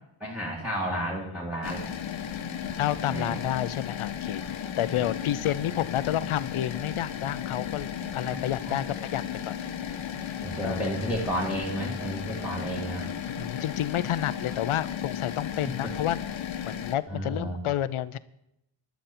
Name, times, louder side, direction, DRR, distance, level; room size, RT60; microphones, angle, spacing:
voice 1, 0.2-1.8 3.1-3.4 8.2-8.4 8.7-8.8 10.4-13.1 17.1-17.6, right 1 dB, 5° right, -5 dB, 2.0 m, -32 dB
voice 2, 0.9-1.4 2.7-9.5 10.0-10.1 10.6-11.0 13.4-16.2 16.7-18.2, left 12 dB, 85° left, 16 dB, 0.8 m, -30 dB
sound 1, 1.6-17.0, left 8 dB, 70° left, 1.2 m, -35 dB
sound 2, 5.0-11.2, right 3 dB, 15° left, 1.4 m, -52 dB
17.0 x 11.5 x 4.4 m, 0.82 s
wide cardioid pair, 170°, 49 cm